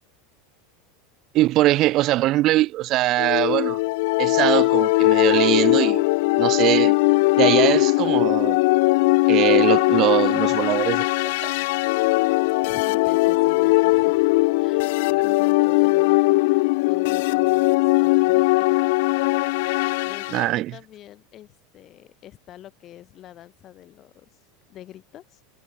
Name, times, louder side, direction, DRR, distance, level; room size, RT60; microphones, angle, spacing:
voice 1, 1.3-3.8 4.2-6.0 6.4-7.0 7.4-8.6 9.3-11.1 11.4-11.5 20.3-20.7, right 16 dB, 40° right, 0.6 m, -21 dB
sound 1, 3.2-20.4, left 23 dB, 55° left, 0.8 m, -20 dB
voice 2, 12.6-18.7 19.6-25.4, left 12 dB, 35° left, 7.0 m, -45 dB
figure-of-eight pair, 80°, 0 cm